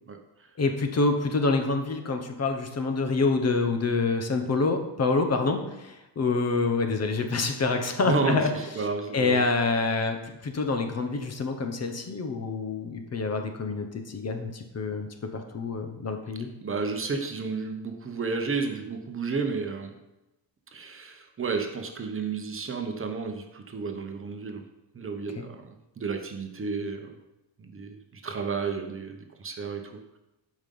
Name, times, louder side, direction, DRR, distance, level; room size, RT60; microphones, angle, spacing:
voice 1, 0.6-8.5 9.1-16.5 25.4-25.5, left 3 dB, 35° left, 5 dB, 1.1 m, -27 dB
voice 2, 8.0-9.4 16.6-19.9 20.7-24.6 24.9-27.1 27.6-30.2, right 4 dB, 30° right, 4 dB, 0.9 m, -32 dB
11.5 x 5.3 x 5.4 m, 0.97 s
cardioid pair, 150°, 42 cm